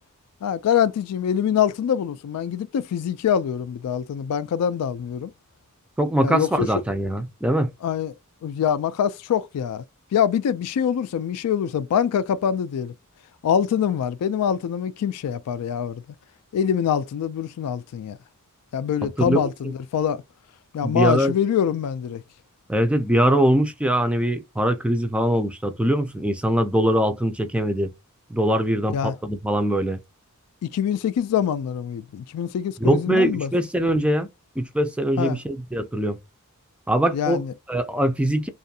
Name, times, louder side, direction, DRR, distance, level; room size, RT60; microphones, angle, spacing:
voice 1, 0.4-5.3 6.2-6.7 7.8-8.1 8.4-9.8 10.1-12.9 13.4-16.0 16.5-18.2 18.7-20.2 20.7-22.2 28.9-29.1 30.6-33.5 35.2-35.4 37.1-37.5, left 8 dB, 85° left, 0.3 m, -24 dB
voice 2, 6.0-7.7 19.0-19.5 20.8-21.3 22.7-27.9 28.3-30.0 32.8-34.3 34.6-36.2 36.9-37.4 37.7-38.5, right 1 dB, 5° right, 0.3 m, -22 dB
2.5 x 2.4 x 2.7 m
head